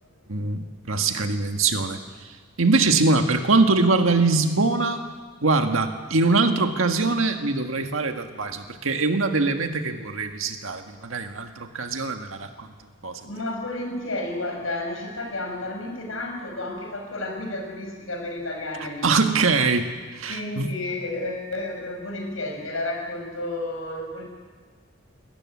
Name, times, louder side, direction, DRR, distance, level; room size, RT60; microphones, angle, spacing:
voice 1, 0.3-5.0 5.4-12.7 13.0-13.2 19.0-20.7, right 3 dB, 85° right, 6 dB, 1.7 m, -23 dB
voice 2, 13.2-19.2 20.3-24.2, left 2 dB, 90° left, 2 dB, 5.5 m, -31 dB
20.5 x 13.5 x 9.7 m, 1.5 s
head